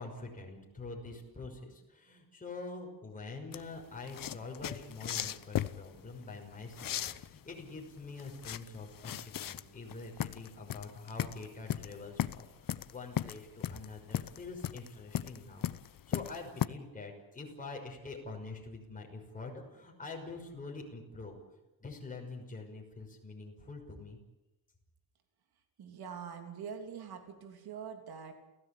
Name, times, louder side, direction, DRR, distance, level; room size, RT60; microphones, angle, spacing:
voice 1, 0.0-21.4 21.8-24.2, left 3 dB, 20° left, 0 dB, 5.9 m, -45 dB
sound 1, 3.5-16.7, left 11 dB, 60° left, 0.9 m, -37 dB
voice 2, 25.8-28.3, right 7 dB, 75° right, 5 dB, 3.3 m, -44 dB
29.5 x 16.5 x 8.7 m, 0.99 s
cardioid pair, 135°, 37 cm